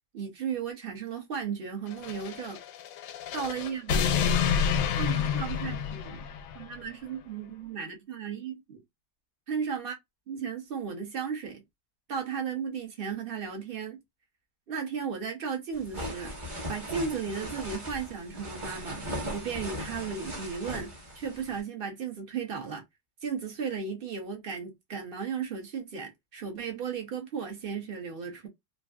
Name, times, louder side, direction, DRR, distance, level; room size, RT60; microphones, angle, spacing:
voice 1, 0.1-2.6 3.3-4.2 4.9-6.2 6.5-8.8 9.5-9.9 10.3-11.6 12.1-14.0 14.7-16.3 16.7-22.8 23.2-28.5, right 6 dB, 70° right, 0.5 m, -35 dB
sound 1, 1.9-6.7, left 7 dB, 85° left, 1.3 m, -29 dB
sound 2, 15.7-21.6, equal, 25° right, 0.6 m, -38 dB
3.2 x 2.5 x 2.3 m
omnidirectional pair, 2.0 m